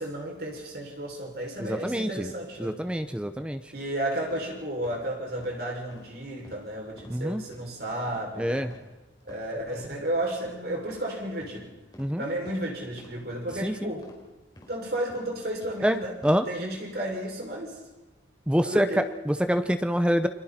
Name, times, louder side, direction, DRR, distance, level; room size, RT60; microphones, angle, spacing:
voice 1, 0.0-2.8 3.7-8.8 9.2-11.7 12.2-14.1 14.7-16.2 16.5-17.8 18.6-19.1, right 1 dB, 55° right, -1 dB, 6.6 m, -33 dB
voice 2, 1.6-2.3 2.6-3.6 7.1-7.4 8.4-8.7 12.0-12.2 13.6-13.9 15.8-16.0 16.2-16.4 18.5-18.9 19.3-20.3, equal, 5° right, 9 dB, 0.8 m, -25 dB
sound 1, 4.3-4.4 4.8-5.0 5.4-5.5 5.9-6.1 6.4-6.6 7.0-7.1 7.5-7.7 8.1-8.3 8.6-8.8 9.2-9.4 9.8-9.9 10.4-10.6 10.9-11.1 11.4-11.6 11.9-12.1 12.4-12.6 13.0-13.1 13.5-13.7 14.0-14.2 14.6-14.7 15.1-15.2 15.6-15.8 16.2-16.3, equal, 20° left, 4.2 m, -50 dB
29.5 x 23.0 x 4.4 m, 1.2 s
head